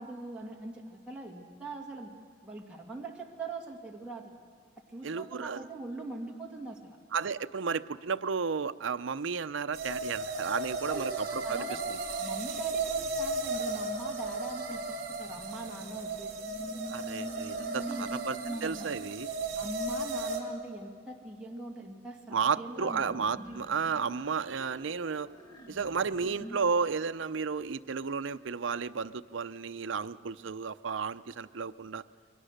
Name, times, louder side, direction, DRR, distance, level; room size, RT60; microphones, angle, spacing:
voice 1, 0.0-2.1 2.4-4.4 4.8-7.0 10.9-11.0 11.4-16.3 17.8-18.1 18.5-19.1 19.6-23.1 23.4-23.6, right 2 dB, 5° right, -3 dB, 2.2 m, -42 dB
voice 2, 5.0-5.6 7.1-11.6 11.9-12.0 16.9-19.3 22.3-25.3 25.7-32.0, right 5 dB, 80° right, 13 dB, 0.6 m, -33 dB
sound 1, 9.7-20.4, right 3 dB, 50° right, 3.3 m, -35 dB
sound 2, 10.0-11.8 12.9-19.7 22.8-26.6, right 1 dB, 20° left, 1.8 m, -46 dB
28.5 x 23.0 x 6.6 m, 2.2 s
head